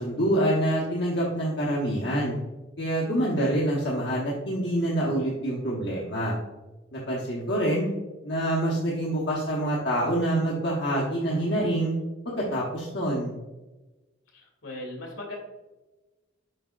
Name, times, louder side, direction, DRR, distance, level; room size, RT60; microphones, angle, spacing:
voice 1, 0.0-2.3 2.8-6.3 6.9-7.9 8.2-11.9 12.4-13.3, right 1 dB, 55° left, -5 dB, 1.1 m, -26 dB
voice 2, 14.3-15.4, left 1 dB, 75° left, 0 dB, 2.0 m, -38 dB
7.7 x 5.5 x 2.4 m, 1.1 s
head